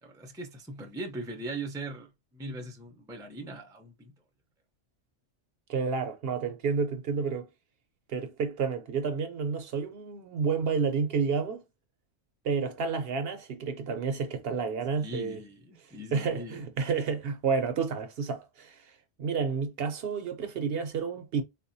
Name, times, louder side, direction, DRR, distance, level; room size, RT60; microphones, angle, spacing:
voice 1, 0.0-4.1 15.0-16.6, right 2 dB, 5° right, 0.4 m, -40 dB
voice 2, 5.7-7.5 8.1-11.6 12.4-15.4 16.1-21.4, right 5 dB, 65° right, 0.7 m, -30 dB
4.1 x 2.2 x 2.6 m
omnidirectional pair, 1.2 m